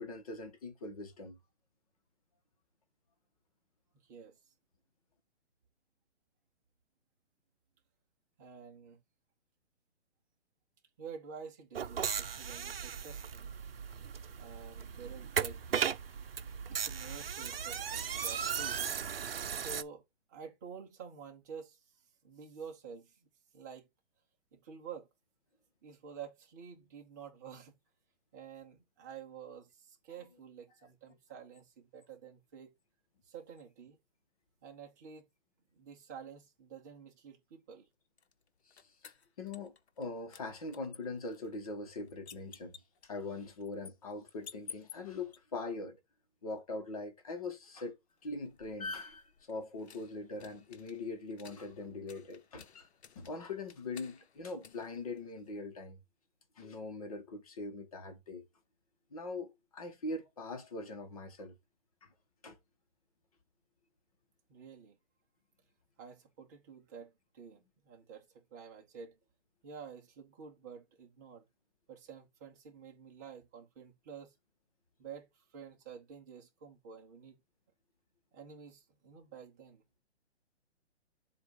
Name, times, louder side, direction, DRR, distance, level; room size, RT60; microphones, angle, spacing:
voice 1, 0.0-1.4 38.7-42.8 43.0-46.0 46.4-48.0 48.2-52.9 53.1-56.0 56.6-58.4 59.1-61.6 62.0-62.1 62.4-62.6, left 3 dB, 30° left, 1.2 m, -42 dB
voice 2, 4.0-4.5 8.4-9.0 11.0-13.5 14.4-16.0 16.7-18.8 19.6-20.0 20.3-21.8 22.2-23.3 23.5-23.9 24.5-25.1 25.8-27.7 28.3-32.7 33.2-34.0 34.6-35.3 35.7-37.9 64.5-65.0 66.0-69.2 69.6-71.5 71.9-74.3 75.0-77.4 78.3-79.8, right 6 dB, 15° right, 0.9 m, -50 dB
sound 1, 11.7-19.8, right 7 dB, 55° right, 0.8 m, -37 dB
sound 2, 38.2-40.1 40.3-45.4 48.2-55.7, left 6 dB, 65° left, 1.1 m, -55 dB
7.6 x 2.6 x 5.4 m
hypercardioid pair, 175°, 35 cm